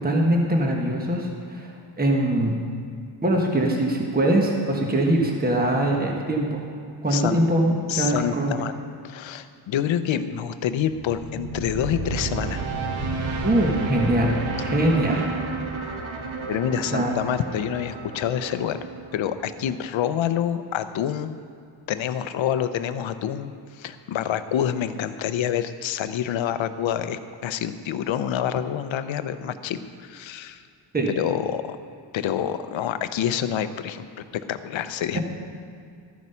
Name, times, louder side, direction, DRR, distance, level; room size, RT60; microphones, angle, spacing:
voice 1, 0.0-2.6 3.2-6.6 7.0-8.6 13.4-14.3 14.6-15.3 16.9-17.1 30.9-31.1, right 1 dB, 20° right, 0 dB, 1.4 m, -22 dB
voice 2, 7.9-8.7 9.0-12.6 16.5-18.8 19.1-21.4 21.9-30.6 31.2-31.8 32.1-34.1 34.3-35.2, left 9 dB, 70° left, 11 dB, 0.7 m, -27 dB
sound 1, 10.9-19.9, right 3 dB, 70° right, 1.5 m, -32 dB
13.5 x 9.4 x 5.6 m, 2.3 s
cardioid pair, 125°, 48 cm